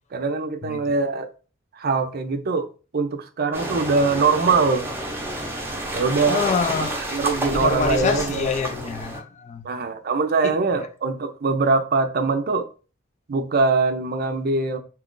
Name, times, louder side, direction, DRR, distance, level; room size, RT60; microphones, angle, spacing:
voice 1, 0.1-1.3 1.7-4.9 5.9-6.4 7.1-8.5 9.6-12.7 13.3-14.8, right 4 dB, 50° right, 0.5 m, -22 dB
sound 1, 3.5-9.2, right 1 dB, 10° right, 0.7 m, -30 dB
voice 2, 6.3-7.0 7.5-9.7 10.4-10.9, left 5 dB, 35° left, 0.4 m, -26 dB
2.8 x 2.4 x 3.7 m
head